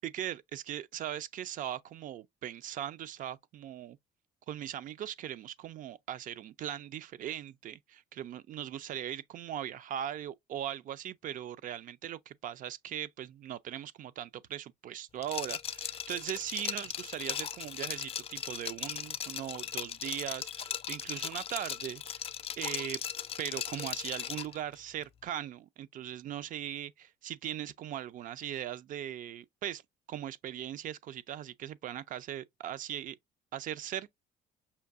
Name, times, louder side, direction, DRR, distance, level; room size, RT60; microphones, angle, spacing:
voice 1, 0.0-4.0 4.5-22.3 22.6-23.0 23.4-29.8 30.1-33.2 33.5-34.1, right 11 dB, 50° right, 0.4 m, -39 dB
Liquid, 15.2-24.6, left 8 dB, 35° left, 0.4 m, -38 dB
5.6 x 2.5 x 2.4 m
cardioid pair, 110°, 17 cm